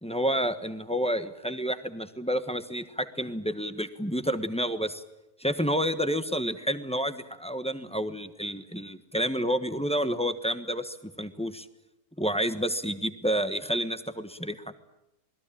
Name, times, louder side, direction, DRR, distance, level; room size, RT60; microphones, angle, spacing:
voice 1, 0.0-5.0 5.4-11.7 12.2-14.6, equal, 5° left, 10 dB, 1.2 m, -29 dB
27.5 x 20.5 x 8.8 m, 0.92 s
omnidirectional pair, 1.6 m